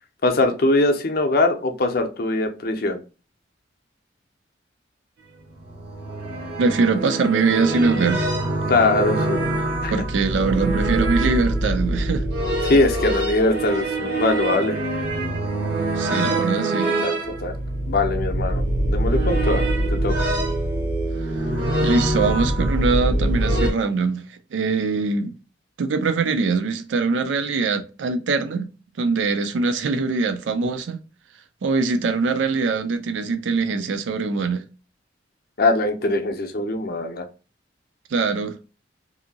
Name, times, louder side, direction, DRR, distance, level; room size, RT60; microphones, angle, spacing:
voice 1, 0.2-3.0 8.7-10.0 12.6-14.8 17.0-17.1 17.4-17.5 17.9-18.6 18.9-20.3 35.6-37.3, left 2 dB, 55° left, 0.5 m, -22 dB
sound 1, 5.4-23.7, right 1 dB, 60° right, 0.8 m, -24 dB
voice 2, 6.6-8.3 9.9-12.2 16.0-17.0 21.8-24.2 24.5-25.3 25.8-28.7 29.0-31.0 31.6-34.7 38.1-38.6, right 4 dB, 80° right, 0.4 m, -22 dB
2.7 x 2.6 x 2.7 m
head